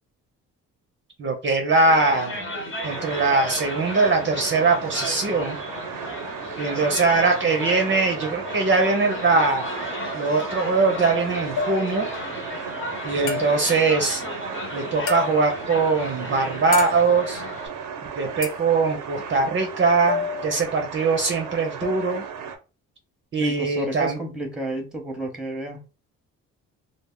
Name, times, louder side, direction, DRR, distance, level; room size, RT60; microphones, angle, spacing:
voice 1, 1.2-2.4 2.8-5.6 6.6-9.7 10.1-12.1 13.0-14.2 14.7-17.4 18.2-22.2 23.3-24.2, right 3 dB, 35° right, 0.6 m, -21 dB
sound 1, 1.7-17.7, left 1 dB, 40° left, 0.9 m, -34 dB
sound 2, 2.8-22.6, right 7 dB, 75° right, 0.6 m, -36 dB
sound 3, 11.6-12.1 13.3-13.8 15.1-15.6 16.7-17.2 18.4-18.7 20.1-20.8 21.8-22.2, left 6 dB, 65° left, 0.7 m, -31 dB
voice 2, 23.4-25.8, right 1 dB, ahead, 0.8 m, -31 dB
2.0 x 2.0 x 3.5 m
cardioid pair, 80°, 32 cm